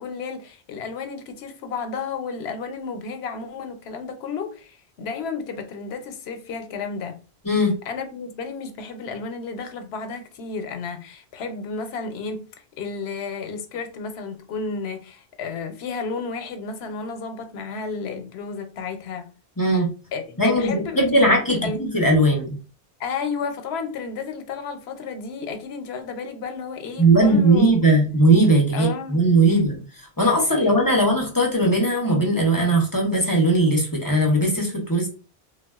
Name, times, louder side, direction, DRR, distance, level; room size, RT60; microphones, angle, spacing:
voice 1, 0.0-7.2 7.9-12.4 12.8-19.3 20.1-21.8 23.0-27.8 28.7-29.6 30.6-31.0, left 5 dB, 90° left, 0.9 m, -32 dB
voice 2, 7.4-7.8 19.6-19.9 20.4-22.6 27.0-35.1, right 1 dB, 25° left, 0.6 m, -19 dB
3.5 x 2.3 x 2.3 m
omnidirectional pair, 1.0 m